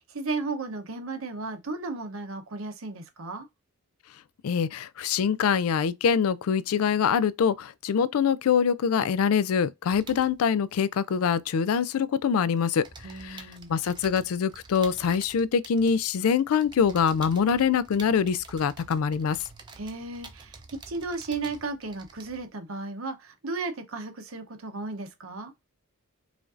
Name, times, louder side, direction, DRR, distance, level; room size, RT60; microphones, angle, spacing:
voice 1, 0.0-3.5 13.0-13.7 19.8-20.6 20.9-25.5, right 3 dB, 75° right, 0.8 m, -34 dB
voice 2, 4.4-12.9 13.2-13.4 13.7-19.4, left 6 dB, 90° left, 0.4 m, -24 dB
sound 1, 9.9-12.2 12.4-22.5, right 4 dB, 20° right, 0.5 m, -49 dB
5.0 x 2.5 x 2.5 m
head